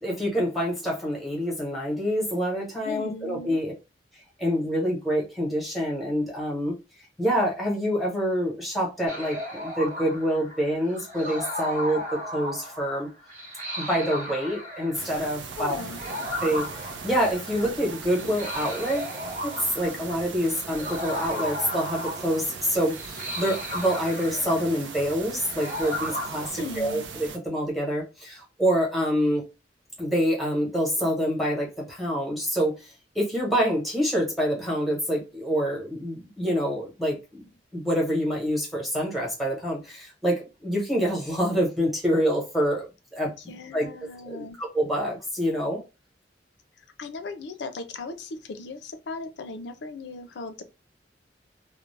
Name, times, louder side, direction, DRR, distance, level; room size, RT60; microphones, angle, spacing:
voice 1, 0.0-3.7 4.4-6.8 7.2-13.1 13.8-15.7 16.4-19.1 19.4-29.4 30.0-32.9 33.1-37.5 37.7-42.9 43.1-43.3 43.7-43.9 44.3-45.8, equal, ahead, 1.0 m, -26 dB
voice 2, 2.8-3.6 15.6-16.0 26.6-27.1 43.5-44.6 47.0-50.6, left 3 dB, 70° left, 0.4 m, -37 dB
sound 1, 9.1-26.5, equal, 45° right, 0.8 m, -36 dB
sound 2, 14.9-27.4, right 5 dB, 90° right, 0.5 m, -39 dB
2.4 x 2.0 x 3.1 m
head